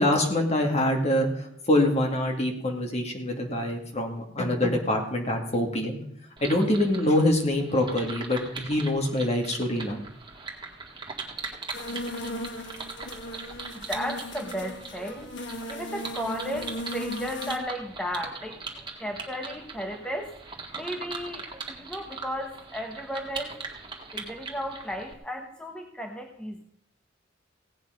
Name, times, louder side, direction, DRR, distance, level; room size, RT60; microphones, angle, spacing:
voice 1, 0.0-6.0 6.4-10.0, left 1 dB, 35° left, 2 dB, 2.3 m, -25 dB
sound 1, 6.4-25.1, right 4 dB, 25° right, 2.0 m, -40 dB
sound 2, 11.7-17.6, left 1 dB, 65° left, 1.7 m, -37 dB
voice 2, 13.7-15.3 15.7-18.6 19.0-20.3 20.7-23.5 24.1-26.6, equal, 5° left, 2 dB, 1.1 m, -34 dB
17.0 x 8.8 x 5.2 m, 0.70 s
head